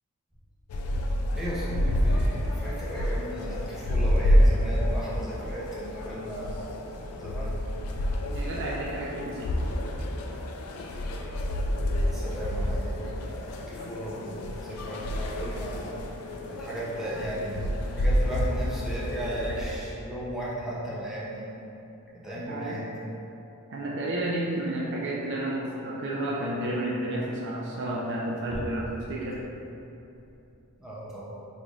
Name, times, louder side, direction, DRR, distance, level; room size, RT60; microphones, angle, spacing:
sound 1, 0.7-19.8, equal, 85° left, 0.3 m, -28 dB
voice 1, 1.3-6.7 7.2-7.6 12.1-15.9 16.5-21.5 22.2-23.0 30.8-31.2, right 1 dB, ahead, -8 dB, 0.5 m, -36 dB
voice 2, 8.3-9.5 22.5-22.8 23.7-29.4, right 1 dB, 55° right, -4 dB, 0.3 m, -31 dB
3.9 x 3.1 x 2.4 m, 2.9 s
head